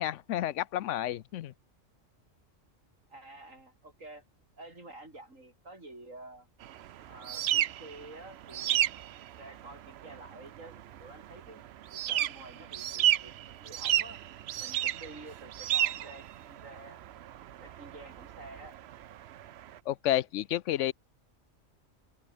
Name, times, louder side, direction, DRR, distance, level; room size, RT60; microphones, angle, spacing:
voice 1, 0.0-1.5 19.9-20.9, left 12 dB, 75° left, 0.9 m, -30 dB
voice 2, 3.1-4.2 4.6-6.5 7.1-8.8 9.4-11.6 11.9-14.2 14.6-17.0 17.6-18.8, right 2 dB, 90° right, 6.7 m, -49 dB
sound 1, 6.6-19.8, right 12 dB, 65° right, 0.8 m, -33 dB
omnidirectional pair, 1.3 m